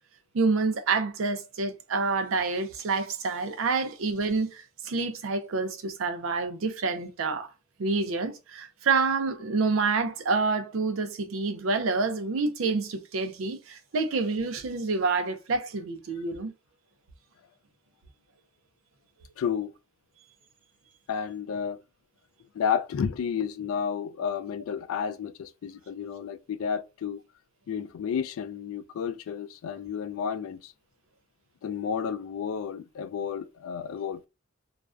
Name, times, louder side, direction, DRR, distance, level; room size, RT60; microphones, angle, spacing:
voice 1, 0.3-7.5 7.8-16.5, right 4 dB, 75° right, 0.5 m, -28 dB
voice 2, 19.4-19.7 21.1-21.8 22.5-27.2 27.7-30.7 31.6-34.3, left 7 dB, 80° left, 0.3 m, -31 dB
2.4 x 2.1 x 2.4 m
head